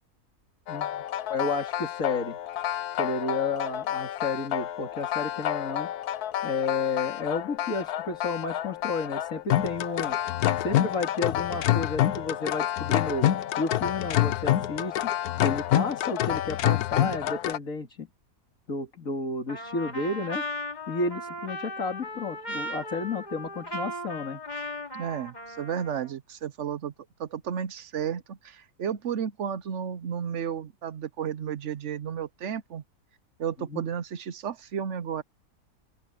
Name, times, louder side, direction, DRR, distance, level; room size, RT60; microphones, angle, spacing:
sound 1, 0.7-17.6, left 12 dB, 70° left, 1.2 m, -28 dB
voice 1, 0.7-1.0 1.3-2.4 3.0-5.9 6.4-10.2 10.6-13.3 13.6-15.1 15.4-18.1 18.7-20.4 20.9-24.4 33.7-33.8, left 3 dB, 50° left, 3.0 m, -31 dB
Trumpet, 19.5-26.1, equal, 25° left, 3.2 m, -37 dB
voice 2, 24.9-26.9 27.2-32.8 33.4-35.2, right 8 dB, 55° right, 0.9 m, -33 dB
open air
omnidirectional pair, 1.8 m